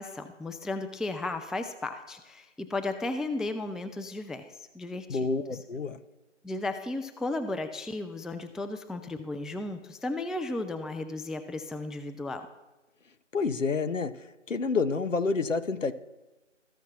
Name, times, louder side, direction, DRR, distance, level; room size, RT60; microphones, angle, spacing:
voice 1, 0.0-4.5 4.7-5.2 6.4-12.5, left 2 dB, ahead, 8 dB, 0.3 m, -34 dB
voice 2, 5.1-6.0 13.3-14.1 14.5-15.9, left 4 dB, 80° left, 11 dB, 0.8 m, -28 dB
14.5 x 5.8 x 2.8 m, 1.1 s
figure-of-eight pair, 175°, 38 cm